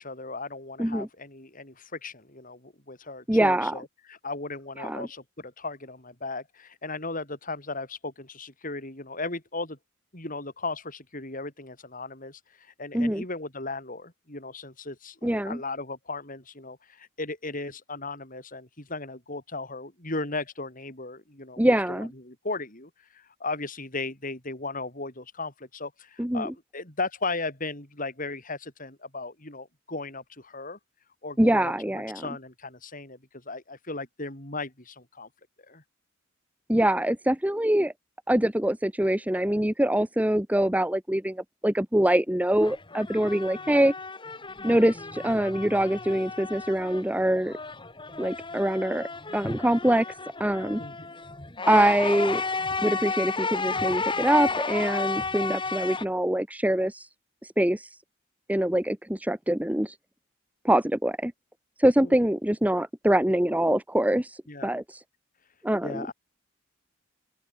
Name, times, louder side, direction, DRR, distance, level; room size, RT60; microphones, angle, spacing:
voice 1, 0.0-9.8 10.1-30.8 31.2-35.3 35.7-35.8 50.8-51.1 62.0-62.1 64.5-64.7 65.8-66.1, left 3 dB, 40° left, 6.3 m, -36 dB
voice 2, 3.3-3.7 4.8-5.1 12.9-13.2 15.2-15.6 21.6-22.1 26.2-26.5 31.4-32.3 36.7-37.9 38.3-43.9 44.6-47.6 48.2-50.0 50.4-50.8 51.7-52.4 52.8-57.1 57.6-57.9 58.5-59.9 60.6-61.3 61.8-65.0 65.6-66.1, right 1 dB, 5° right, 1.1 m, -24 dB
sound 1, 42.6-47.1 47.4-56.0, left 4 dB, 25° left, 2.6 m, -33 dB
open air
head